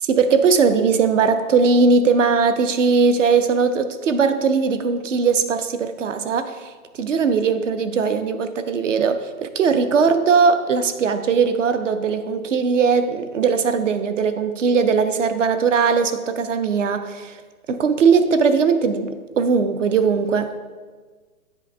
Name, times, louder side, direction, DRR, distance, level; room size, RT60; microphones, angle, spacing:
voice 1, 0.1-17.4 17.7-20.5, right 5 dB, 55° right, 10 dB, 0.6 m, -19 dB
9.3 x 5.2 x 3.3 m, 1.4 s
hypercardioid pair, 165°, 45 cm